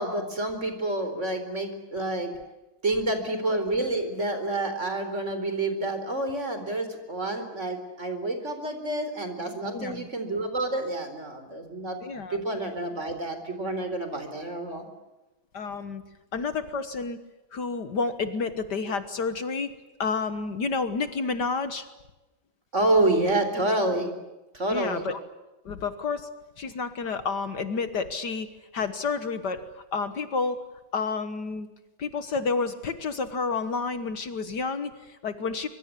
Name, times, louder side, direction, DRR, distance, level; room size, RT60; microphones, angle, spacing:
voice 1, 0.0-2.3 2.8-12.0 12.3-14.9 22.7-24.1 24.5-25.1, right 2 dB, 35° right, 7 dB, 4.4 m, -28 dB
voice 2, 9.7-10.1 12.0-12.4 15.5-16.0 16.3-17.2 17.5-19.7 20.0-21.9 24.7-25.2 25.7-26.3 26.6-28.5 28.7-30.6 30.9-31.7 32.0-35.7, left 4 dB, 60° left, 10 dB, 1.9 m, -30 dB
25.0 x 24.0 x 8.4 m, 1.1 s
omnidirectional pair, 2.2 m